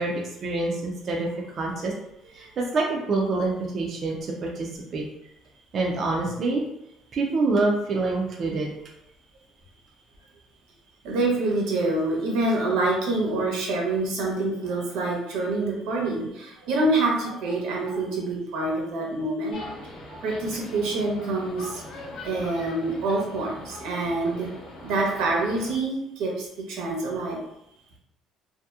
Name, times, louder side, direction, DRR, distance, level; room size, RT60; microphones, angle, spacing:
voice 1, 0.0-1.9 2.3-5.0 5.7-6.6 7.1-8.7, right 3 dB, 35° right, -1 dB, 0.3 m, -26 dB
voice 2, 11.0-19.6 20.1-21.8 22.2-24.5 24.8-27.4, right 2 dB, 85° right, -1 dB, 0.8 m, -26 dB
sound 1, 19.5-25.7, left 1 dB, 45° left, 0.7 m, -41 dB
2.7 x 2.5 x 2.3 m, 0.81 s
cardioid pair, 170°, 0 cm